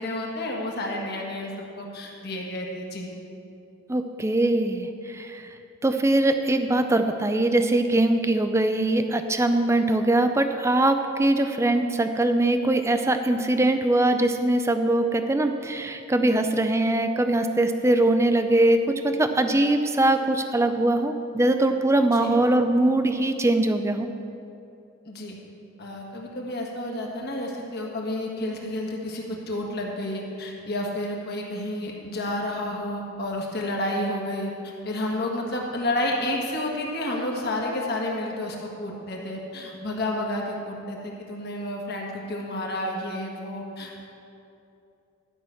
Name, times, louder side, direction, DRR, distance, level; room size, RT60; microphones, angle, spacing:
voice 1, 0.0-3.1 22.1-22.3 25.1-25.4 25.8-44.1, left 1 dB, 50° left, -1 dB, 1.6 m, -30 dB
voice 2, 3.9-5.5 5.8-24.1, right 1 dB, 15° right, 7 dB, 0.4 m, -22 dB
12.5 x 6.0 x 6.9 m, 2.7 s
head